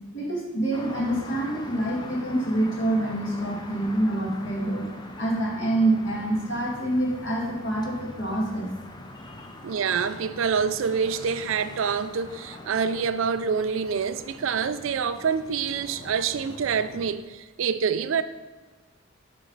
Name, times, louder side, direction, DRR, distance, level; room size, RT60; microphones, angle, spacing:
voice 1, 0.1-8.7 9.1-9.5, right 1 dB, 65° left, 2.0 m, -26 dB
sound 1, 0.7-17.1, left 1 dB, 20° left, 0.6 m, -43 dB
voice 2, 9.6-18.2, right 6 dB, 65° right, 0.4 m, -26 dB
7.8 x 5.5 x 3.9 m
head